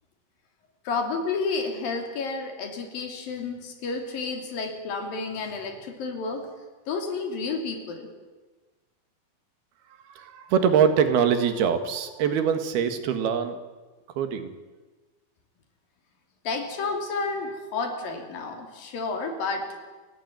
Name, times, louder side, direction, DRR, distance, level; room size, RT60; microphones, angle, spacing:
voice 1, 0.8-6.5 6.9-8.1 16.4-19.7, left 4 dB, 65° left, 5 dB, 4.6 m, -31 dB
voice 2, 10.2-13.6 14.2-14.5, right 7 dB, 85° right, 9 dB, 3.7 m, -23 dB
29.0 x 15.0 x 9.4 m, 1.3 s
omnidirectional pair, 4.4 m